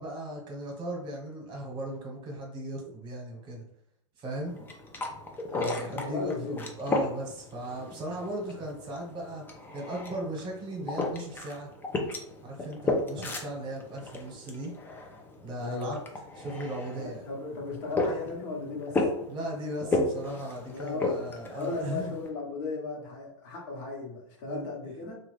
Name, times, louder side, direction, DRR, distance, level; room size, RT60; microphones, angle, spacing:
voice 1, 0.0-3.6 4.2-4.6 5.5-9.4 9.7-11.7 12.4-14.7 15.4-16.0 16.4-17.2 18.1-18.2 19.3-22.2 24.5-24.8, right 1 dB, 30° right, 0 dB, 1.2 m, -37 dB
sound 1, 4.5-22.3, left 2 dB, 15° left, 0.5 m, -35 dB
voice 2, 5.5-6.6 15.6-16.0 17.0-19.0 20.6-21.1 21.5-25.1, left 4 dB, 45° left, -1 dB, 1.2 m, -36 dB
2.9 x 2.4 x 3.3 m, 0.75 s
hypercardioid pair, 120°, 16 cm